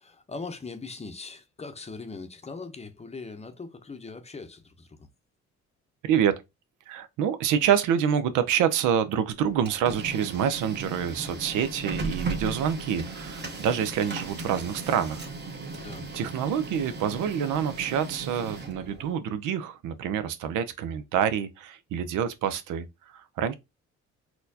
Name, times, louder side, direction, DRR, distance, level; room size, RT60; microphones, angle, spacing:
voice 1, 0.0-5.1 15.8-16.1, left 4 dB, 20° left, 0.6 m, -40 dB
voice 2, 6.0-6.4 6.9-15.2 16.1-23.5, right 8 dB, 85° right, 0.6 m, -27 dB
Printer, 9.4-19.1, right 3 dB, 35° right, 1.0 m, -36 dB
4.2 x 2.2 x 2.7 m
cardioid pair, 90°, 30 cm